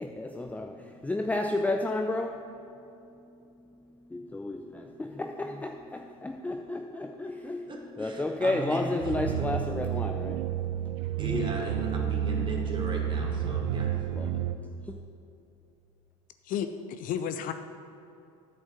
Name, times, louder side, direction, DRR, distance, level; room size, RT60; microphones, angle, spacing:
voice 1, 0.0-2.8 4.1-10.6 11.2-12.4 14.1-14.9, left 2 dB, 10° left, 4 dB, 0.6 m, -33 dB
voice 2, 7.7-8.8 11.2-13.9, right 2 dB, 30° right, 0 dB, 2.2 m, -38 dB
sound 1, 9.0-14.6, right 9 dB, 70° right, 0.5 m, -30 dB
voice 3, 16.4-17.5, left 8 dB, 55° left, 9 dB, 0.6 m, -32 dB
9.2 x 5.4 x 7.4 m, 2.8 s
hypercardioid pair, 75°, 17 cm